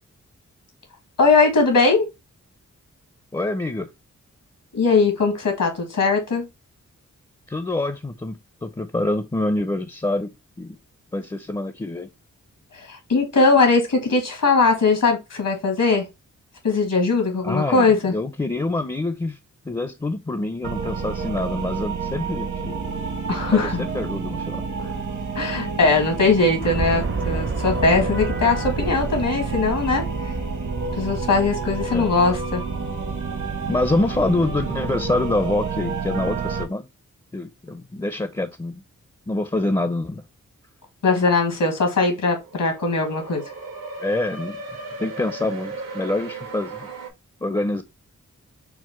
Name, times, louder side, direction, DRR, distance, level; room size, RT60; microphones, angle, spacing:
voice 1, 1.2-2.1 4.7-6.4 12.7-16.1 16.6-18.1 23.3-23.9 25.3-30.0 30.9-32.6 41.0-43.4, left 4 dB, 80° left, 1.6 m, -20 dB
voice 2, 3.3-3.9 7.5-10.3 10.6-10.8 11.1-12.1 17.4-19.4 19.7-22.8 23.5-24.9 31.9-32.1 33.7-36.9 37.3-38.7 39.3-40.2 44.0-44.6 45.0-46.9 47.4-47.8, left 2 dB, 15° left, 0.5 m, -26 dB
sound 1, 20.6-36.6, right 4 dB, 65° right, 1.1 m, -29 dB
sound 2, 26.6-32.8, right 4 dB, 40° right, 0.6 m, -30 dB
sound 3, 42.2-47.1, right 3 dB, 85° right, 1.2 m, -36 dB
4.6 x 2.1 x 4.3 m
cardioid pair, 55°, 32 cm